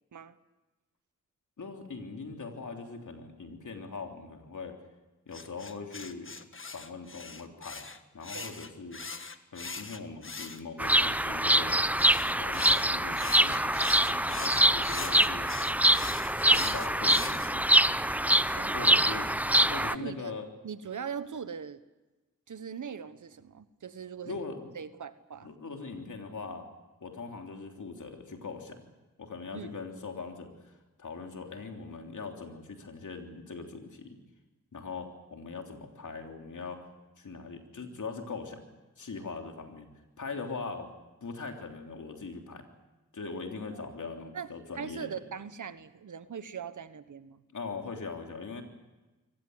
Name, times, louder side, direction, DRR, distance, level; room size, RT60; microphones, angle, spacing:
voice 1, 1.6-4.8 5.3-6.4 6.7-7.8 8.1-9.0 9.5-11.8 12.4-15.5 16.3-17.7 18.7-19.3 19.7-20.5 24.2-24.7 25.4-26.7 27.0-28.8 29.2-30.7 31.0-34.2 34.7-36.8 37.2-38.6 39.0-39.9 40.2-40.9 41.2-42.7 43.1-45.2 47.5-48.6, left 4 dB, 70° left, 3 dB, 3.3 m, -41 dB
sound 1, 5.3-11.2 12.0-17.5, left 4 dB, 40° left, 1.5 m, -42 dB
Bird vocalization bird call bird song, 10.8-19.9, right 1 dB, 5° right, 0.7 m, -25 dB
voice 2, 18.5-19.2 19.9-20.3 20.6-21.8 22.5-24.4 24.7-25.5 29.5-29.7 43.7-43.9 44.3-44.5 44.7-47.4, right 7 dB, 70° right, 13 dB, 1.3 m, -41 dB
24.0 x 18.5 x 8.1 m, 1.1 s
cardioid pair, 40°, 31 cm